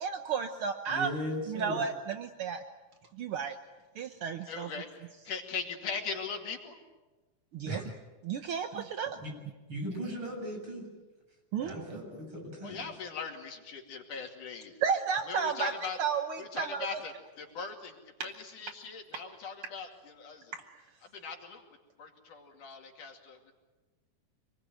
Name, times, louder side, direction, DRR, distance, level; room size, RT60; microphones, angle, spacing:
voice 1, 0.0-1.1 1.5-2.6 3.1-3.6 3.9-4.7 7.5-7.8 8.2-9.2 11.5-11.8 14.8-15.7 16.0-16.9 20.5-20.6, right 6 dB, 70° right, 7 dB, 1.3 m, -32 dB
voice 2, 0.9-1.8 7.7-7.8 9.2-9.3 9.7-10.9 11.6-12.8, equal, 35° right, 0 dB, 8.4 m, -37 dB
voice 3, 4.4-6.8 12.6-14.7 15.3-16.0 16.4-20.5 21.1-21.6 22.0-23.5, left 5 dB, 65° left, 2 dB, 4.0 m, -40 dB
27.0 x 20.5 x 9.1 m, 1.2 s
omnidirectional pair, 3.9 m